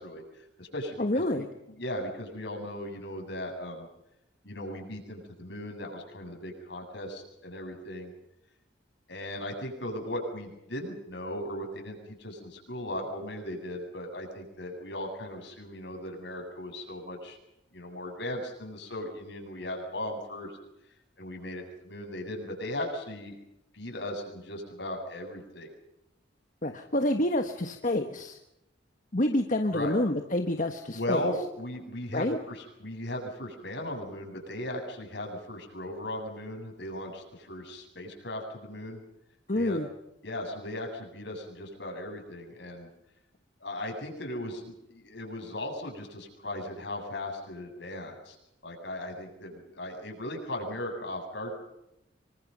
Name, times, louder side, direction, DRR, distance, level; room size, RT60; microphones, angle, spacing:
voice 1, 0.0-3.9 4.4-8.1 9.1-17.4 17.7-20.6 21.2-23.3 23.7-25.7 29.7-30.0 30.9-39.0 39.5-39.8 40.2-42.9 43.6-48.4 48.6-51.5, left 1 dB, 65° left, 3 dB, 7.9 m, -37 dB
voice 2, 1.0-1.4 26.6-28.4 29.1-31.3 32.1-32.4 39.5-39.9, left 1 dB, 45° left, 6 dB, 1.5 m, -28 dB
26.5 x 24.5 x 5.5 m, 0.86 s
head